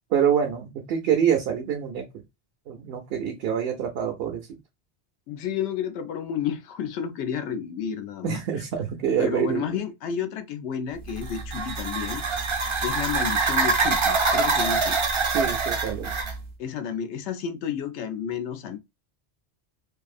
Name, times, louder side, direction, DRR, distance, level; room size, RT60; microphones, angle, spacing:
voice 1, 0.1-2.0 2.7-4.5 8.2-9.8 15.3-16.2, right 8 dB, 70° right, 0.7 m, -26 dB
voice 2, 5.3-8.4 9.2-12.2 12.8-15.0 16.6-18.8, left 8 dB, 90° left, 0.9 m, -31 dB
sound 1, 11.1-16.4, right 4 dB, 50° right, 0.3 m, -25 dB
2.6 x 2.4 x 2.4 m
omnidirectional pair, 1.1 m